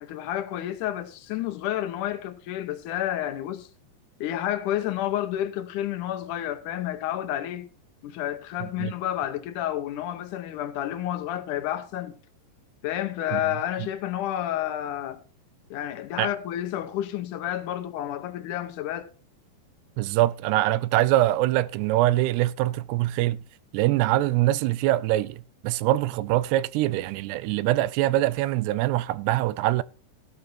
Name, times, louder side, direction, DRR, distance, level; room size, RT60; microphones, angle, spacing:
voice 1, 0.0-3.7 4.2-7.7 8.0-12.1 12.8-15.2 15.7-19.1, left 12 dB, 80° left, 1.9 m, -30 dB
voice 2, 8.6-8.9 13.3-13.4 16.2-16.3 20.0-23.4 23.7-29.8, right 15 dB, 85° right, 2.7 m, -23 dB
15.5 x 11.0 x 2.6 m
omnidirectional pair, 4.8 m